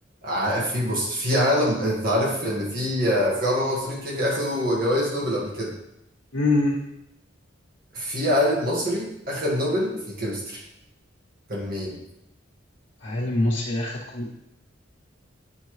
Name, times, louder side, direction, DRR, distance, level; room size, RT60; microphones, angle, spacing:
voice 1, 0.2-5.7 7.9-10.6 11.5-11.9, equal, 50° right, -4 dB, 1.9 m, -24 dB
voice 2, 6.3-6.8 13.0-14.3, left 2 dB, 85° left, -6 dB, 1.2 m, -24 dB
8.2 x 5.4 x 3.2 m, 0.82 s
head